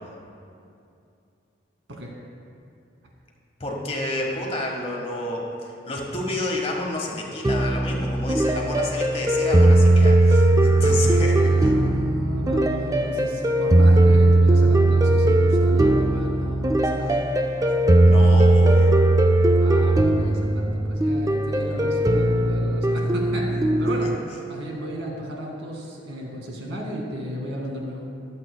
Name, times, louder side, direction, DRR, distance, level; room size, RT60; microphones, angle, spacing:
voice 1, 3.6-11.7 18.1-18.9 24.0-24.1, left 1 dB, 30° left, -1 dB, 1.4 m, -30 dB
sound 1, 7.4-24.2, right 2 dB, 20° right, 0.4 m, -18 dB
voice 2, 10.6-17.2 19.6-24.1 24.5-28.1, equal, 90° right, -1 dB, 2.0 m, -34 dB
23.0 x 7.8 x 2.2 m, 2.5 s
head